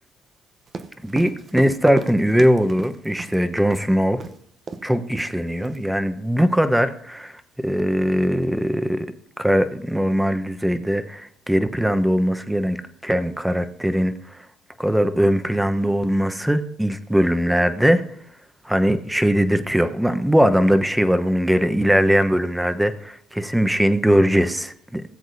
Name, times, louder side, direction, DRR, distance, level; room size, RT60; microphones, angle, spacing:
sound 1, 0.7-3.4 3.7-3.9 4.2-4.4 4.7-4.9 5.1-5.8, right 4 dB, 40° right, 0.9 m, -34 dB
voice 1, 1.0-4.2 4.8-9.1 9.4-14.4 14.8-18.0 18.6-25.0, equal, 5° right, 1.0 m, -20 dB
18.0 x 7.9 x 2.8 m
hypercardioid pair, 65°, 0 cm